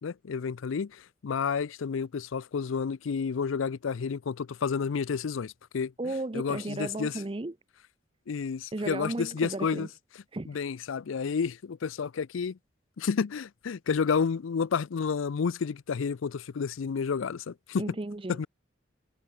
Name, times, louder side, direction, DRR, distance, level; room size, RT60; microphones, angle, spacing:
voice 1, 0.0-5.9 6.3-7.1 8.3-9.9 10.5-12.6 13.0-17.8 18.3-18.5, left 6 dB, 80° left, 0.4 m, -30 dB
voice 2, 6.0-7.6 8.7-9.9 10.3-10.6 17.8-18.4, right 2 dB, 25° right, 0.6 m, -34 dB
head